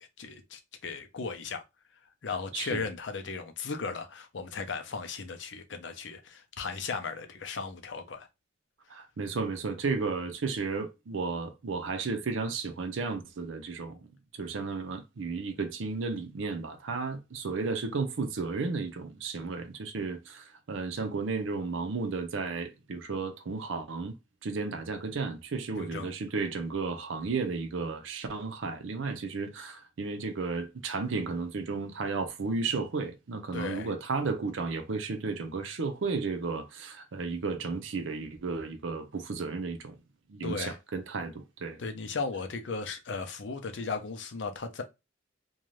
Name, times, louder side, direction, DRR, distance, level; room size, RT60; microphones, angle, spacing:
voice 1, 0.0-1.6 2.2-8.3 25.8-26.1 33.5-33.9 40.4-40.8 41.8-44.8, left 4 dB, 70° left, 0.5 m, -36 dB
voice 2, 8.9-14.1 14.4-24.1 24.4-40.0 40.3-41.8, right 4 dB, 85° right, 0.6 m, -33 dB
2.6 x 2.3 x 3.1 m
head